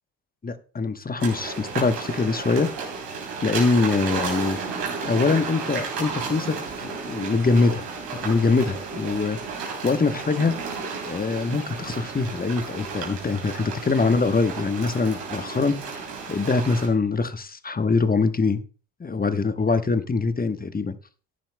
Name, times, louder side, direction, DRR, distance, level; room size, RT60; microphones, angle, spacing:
voice 1, 0.4-2.7 3.4-4.6 5.0-7.8 8.2-9.4 9.8-10.5 11.1-16.0 16.3-18.6 19.0-20.9, left 4 dB, 20° left, 11 dB, 1.0 m, -23 dB
sound 1, 1.2-16.9, right 5 dB, 85° right, 3.3 m, -33 dB
14.5 x 10.5 x 2.2 m, 0.37 s
hypercardioid pair, 55°, 46 cm